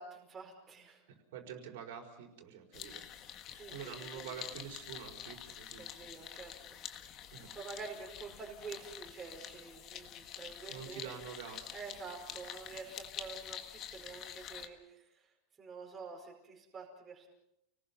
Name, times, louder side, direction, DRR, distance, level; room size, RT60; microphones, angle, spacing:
voice 1, 0.0-1.0 3.5-4.4 5.8-6.8 7.5-11.1 11.7-15.3 15.6-17.3, right 4 dB, 15° right, -1 dB, 4.8 m, -48 dB
voice 2, 1.1-3.1 3.7-5.8 7.3-7.6 10.7-11.7, right 8 dB, 70° right, 2 dB, 5.1 m, -47 dB
sound 1, 2.7-14.7, left 10 dB, 30° left, 1.6 m, -47 dB
29.5 x 20.0 x 5.7 m, 0.80 s
supercardioid pair, 175°, 0 cm